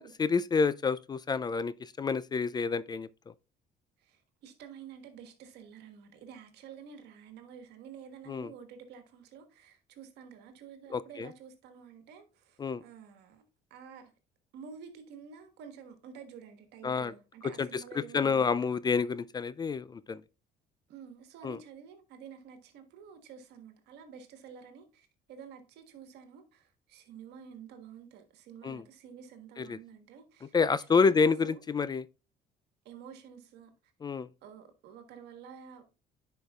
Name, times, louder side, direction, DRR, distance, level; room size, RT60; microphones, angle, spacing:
voice 1, 0.2-3.1 8.3-8.5 10.9-11.3 12.6-12.8 16.8-17.1 17.6-17.7 18.1-20.2 21.4-21.6 28.6-28.8 29.6-29.8 30.5-32.0 34.0-34.3, left 5 dB, 25° left, 0.3 m, -28 dB
voice 2, 4.0-13.4 13.7-14.1 14.5-18.8 20.9-31.6 32.8-33.7 34.4-35.8, right 7 dB, 80° right, 1.5 m, -50 dB
10.0 x 5.2 x 2.3 m
cardioid pair, 110°, 17 cm